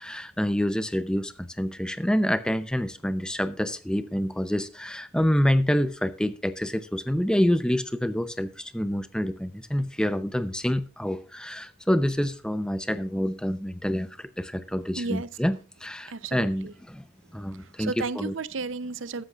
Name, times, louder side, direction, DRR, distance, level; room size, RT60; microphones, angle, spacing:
voice 1, 0.0-17.0 17.3-18.3, equal, 5° left, 0.6 m, -27 dB
voice 2, 15.0-15.3 16.1-16.7 17.8-19.2, right 4 dB, 65° right, 0.7 m, -33 dB
14.0 x 13.0 x 2.4 m
head